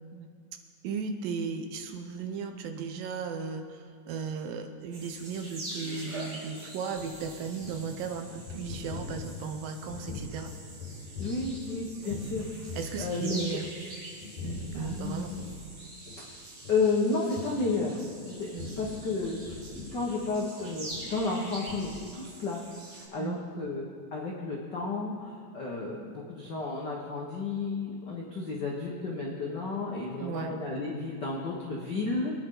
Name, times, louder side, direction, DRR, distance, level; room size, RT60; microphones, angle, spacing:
voice 1, 0.8-10.5 12.0-12.2 12.7-13.7 14.4-15.4 18.5-18.7 23.2-23.4 30.2-30.6, right 5 dB, 75° right, 6 dB, 2.4 m, -36 dB
sound 1, 4.9-23.0, right 1 dB, 45° right, 3.9 m, -45 dB
sound 2, 6.5-12.4 12.7-13.9 14.2-15.7 16.1-16.2 16.5-16.8 17.3-17.5 18.1-21.4 21.7-21.9, left 3 dB, 60° left, 5.2 m, -42 dB
voice 2, 11.2-13.4 14.7-15.4 16.7-18.5 18.8-19.5 19.9-22.6 22.9-32.3, left 3 dB, 80° left, -3 dB, 0.9 m, -32 dB
24.0 x 9.6 x 3.9 m, 2.1 s
omnidirectional pair, 4.3 m